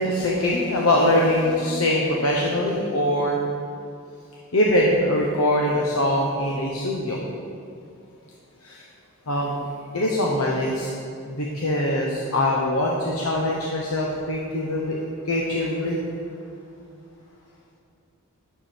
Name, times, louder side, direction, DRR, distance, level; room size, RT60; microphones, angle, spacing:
voice 1, 0.0-3.4 4.5-7.2 8.6-8.8 9.3-10.9 11.3-16.0, left 1 dB, 75° left, -2 dB, 1.0 m, -23 dB
12.0 x 6.9 x 4.4 m, 2.5 s
head